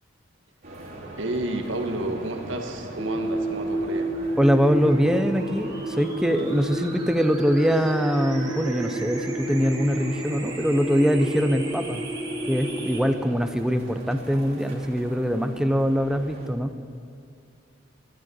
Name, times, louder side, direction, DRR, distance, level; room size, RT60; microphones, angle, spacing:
sound 1, 0.6-16.5, right 1 dB, 50° right, 3.0 m, -41 dB
voice 1, 1.2-4.1, right 1 dB, 70° right, 4 dB, 1.6 m, -30 dB
sound 2, 3.0-13.0, right 1 dB, 20° right, 2.4 m, -31 dB
voice 2, 4.4-12.0 12.5-16.7, equal, 5° right, 8 dB, 0.7 m, -23 dB
13.0 x 12.5 x 7.9 m, 2.4 s
head